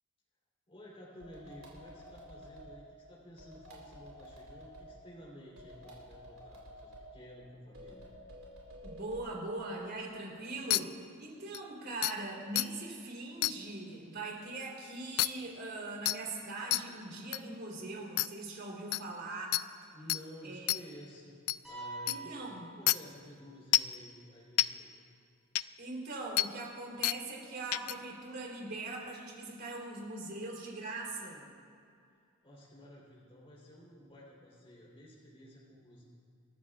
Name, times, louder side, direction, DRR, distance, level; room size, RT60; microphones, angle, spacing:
voice 1, 0.7-8.1 19.9-21.4 21.6-24.9 32.4-36.0, equal, 30° left, -7 dB, 3.5 m, -53 dB
sound 1, 1.2-2.8 3.4-4.9 5.6-7.1 7.7-9.3, equal, 70° right, 3.7 m, -51 dB
voice 2, 8.8-19.6 20.4-20.7 22.1-22.7 25.8-31.5, right 2 dB, 50° right, -2 dB, 3.6 m, -41 dB
sound 2, 10.7-10.8 11.5-11.6 12.0-12.1 12.6-12.7 13.4-13.5 15.2-15.3 16.1-16.2 16.7-16.8 17.3-17.4 18.2-18.3 18.9-19.0 19.5-19.6 20.1-20.2 20.7-20.8 21.5-21.6 22.1-22.2 22.9-23.0 23.7-23.9 24.6-24.7 25.6-25.7 26.4-26.5 27.0-27.2 27.7-27.9, left 16 dB, 85° left, 0.3 m, -28 dB
sound 3, 21.6-23.5, right 2 dB, ahead, 4.2 m, -46 dB
27.5 x 14.0 x 2.5 m, 2.4 s
head